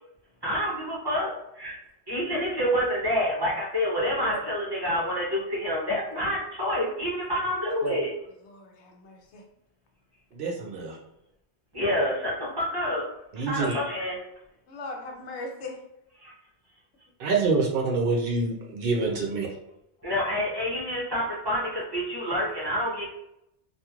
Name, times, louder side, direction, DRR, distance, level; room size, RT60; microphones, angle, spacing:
voice 1, 0.4-1.8 2.1-8.1 11.7-13.1 13.4-14.2 16.2-16.3 20.0-23.1, equal, 25° right, -5 dB, 0.6 m, -28 dB
voice 2, 8.4-9.4 14.7-15.8, left 2 dB, 90° left, 1 dB, 0.9 m, -39 dB
voice 3, 10.3-11.0 13.3-13.7 17.2-19.5, right 4 dB, 65° right, 0 dB, 0.7 m, -26 dB
2.9 x 2.5 x 2.4 m, 0.81 s
omnidirectional pair, 1.1 m